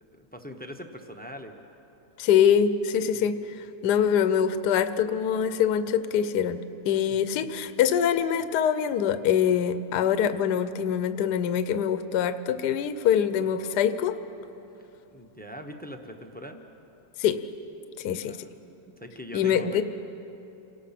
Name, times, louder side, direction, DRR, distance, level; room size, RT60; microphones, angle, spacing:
voice 1, 0.1-1.6 3.1-3.4 7.1-7.5 15.1-16.6 18.1-18.5 19.0-19.8, equal, 10° left, 4 dB, 0.7 m, -42 dB
voice 2, 2.2-3.4 3.8-14.2 17.2-17.4 18.0-18.4 19.3-19.8, left 8 dB, 70° left, 11 dB, 1.2 m, -24 dB
28.5 x 18.5 x 5.9 m, 2.9 s
omnidirectional pair, 2.0 m